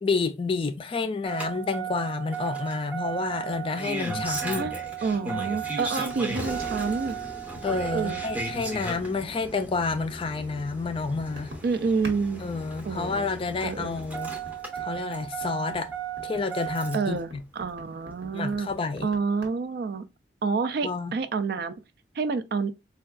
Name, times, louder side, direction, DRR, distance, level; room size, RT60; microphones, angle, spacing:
voice 1, 0.0-4.7 7.6-11.5 12.4-14.3 14.8-15.9 16.2-17.4 18.3-19.1 20.8-21.1, left 4 dB, 30° left, 0.3 m, -29 dB
Engine starting, 1.2-17.2 18.4-18.5, right 5 dB, 10° right, 0.6 m, -35 dB
sound 1, 4.1-12.2 12.5-19.5, equal, 85° right, 1.2 m, -46 dB
voice 2, 5.0-7.2 7.9-8.2 11.6-12.4 12.9-13.3 13.6-14.0 16.9-18.7 19.0-20.0 20.4-21.8 22.2-22.7, right 4 dB, 55° right, 0.3 m, -28 dB
4.4 x 2.3 x 2.4 m
head